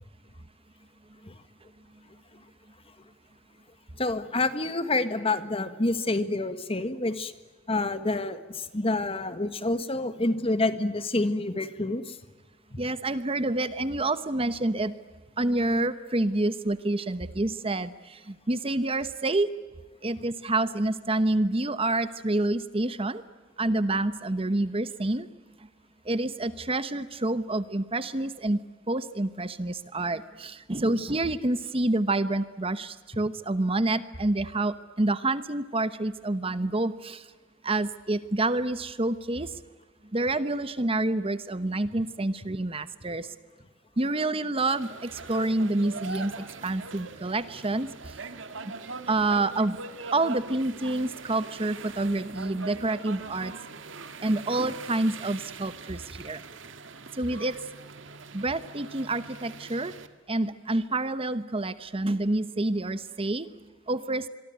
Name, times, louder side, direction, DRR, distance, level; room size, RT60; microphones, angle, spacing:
voice 1, 4.0-7.3 7.7-12.2 12.7-12.8, left 2 dB, 30° left, 11 dB, 1.7 m, -28 dB
voice 2, 12.8-15.0 15.4-19.5 20.0-23.2 23.6-25.3 25.6-25.7 26.0-28.6 28.9-37.3 37.6-39.6 40.1-43.3 44.0-48.2 49.1-49.8 50.1-53.5 54.2-56.4 57.1-57.6 58.3-59.9 60.3-64.3, right 2 dB, 30° right, 13 dB, 1.0 m, -28 dB
sound 1, 44.7-60.1, right 4 dB, 75° right, 2.0 m, -42 dB
27.0 x 23.0 x 9.3 m, 1.3 s
head